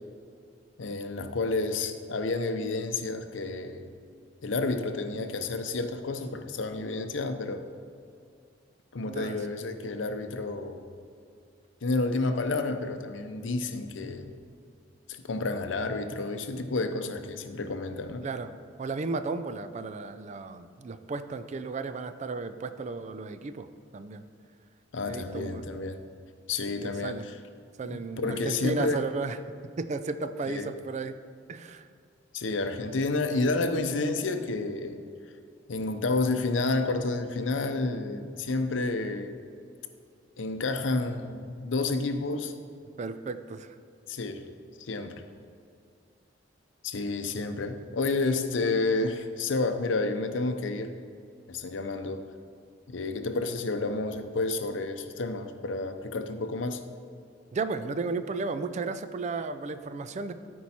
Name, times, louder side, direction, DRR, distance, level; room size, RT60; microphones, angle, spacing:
voice 1, 0.8-3.8 4.4-7.6 8.9-10.9 11.8-14.3 15.1-18.3 24.9-26.0 26.5-27.4 27.9-29.0 30.5-30.7 32.3-35.0 35.7-39.3 40.4-42.5 44.1-44.4 44.8-45.2 46.8-50.9 51.5-52.2 52.9-56.8, left 3 dB, 75° left, 8 dB, 0.6 m, -30 dB
voice 2, 9.0-9.4 18.2-23.7 23.9-24.2 25.0-25.6 26.8-27.2 27.8-29.4 29.8-31.1 31.5-31.8 43.0-43.7 57.5-60.3, right 3 dB, 40° right, 11 dB, 0.4 m, -34 dB
13.5 x 4.6 x 4.2 m, 2.3 s
head